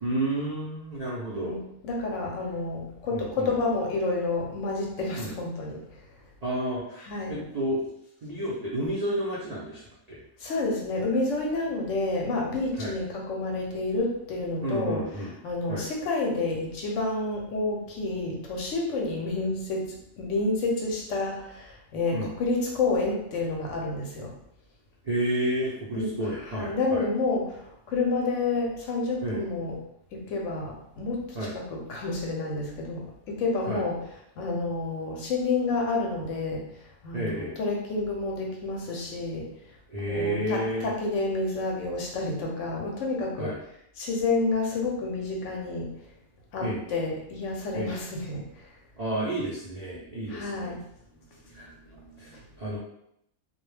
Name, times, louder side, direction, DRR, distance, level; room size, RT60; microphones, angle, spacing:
voice 1, 0.0-1.6 3.1-3.5 5.2-5.3 6.4-7.9 8.2-10.2 12.8-13.0 14.6-15.3 15.7-15.9 22.1-22.3 25.0-27.0 29.2-29.4 31.3-31.5 33.7-33.8 37.1-37.5 39.9-40.9 43.4-43.6 46.6-46.8 47.7-47.9 49.0-50.8 51.5-51.7 52.2-52.8, right 1 dB, 75° right, -7 dB, 0.3 m, -31 dB
voice 2, 1.3-5.8 7.1-7.4 10.4-15.0 15.4-24.3 25.9-26.1 26.5-29.8 30.1-34.0 34.4-36.7 37.0-39.6 40.1-43.6 44.0-45.9 46.5-48.6 50.3-50.8 52.0-52.4, left 3 dB, 65° left, -1 dB, 0.8 m, -29 dB
2.3 x 2.1 x 3.1 m, 0.76 s
omnidirectional pair, 1.5 m